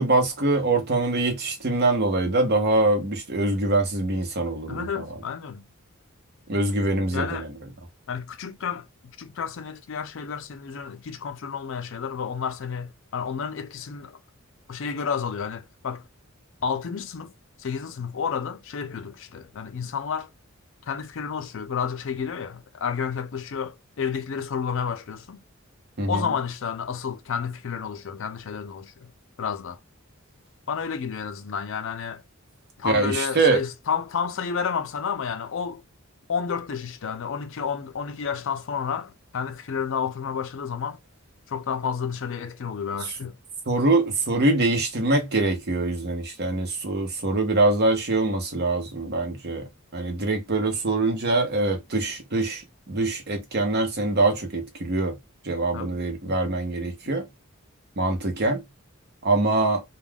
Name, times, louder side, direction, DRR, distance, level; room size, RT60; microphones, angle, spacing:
voice 1, 0.0-5.1 6.5-7.5 26.0-26.2 32.8-33.6 43.7-49.7 49.9-55.2 55.4-57.2 58.0-58.6 59.2-59.8, right 2 dB, 50° right, 0.8 m, -24 dB
voice 2, 4.7-5.7 7.1-7.5 8.1-8.9 9.2-14.2 14.7-16.0 16.6-17.3 17.6-20.3 20.9-25.4 26.1-29.1 29.4-29.8 30.7-32.2 32.8-35.8 36.3-41.0 41.5-43.4 55.7-56.0, left 6 dB, 65° left, 0.5 m, -31 dB
2.3 x 2.3 x 3.3 m
head